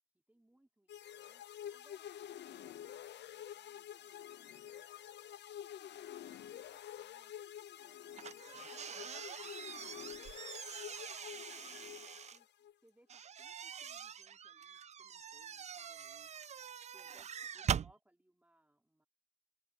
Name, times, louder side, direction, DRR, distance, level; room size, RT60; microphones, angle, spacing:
voice 1, 0.0-1.4 1.7-5.4 5.9-7.3 7.8-9.1 9.4-10.5 10.8-12.5 12.8-16.3 16.9-19.1, right 1 dB, 5° right, 4.0 m, -71 dB
sound 1, 0.9-12.7, left 10 dB, 60° left, 0.8 m, -49 dB
sound 2, 8.1-12.4 13.1-17.9, right 8 dB, 35° right, 0.4 m, -43 dB
open air
cardioid pair, 90°, 20 cm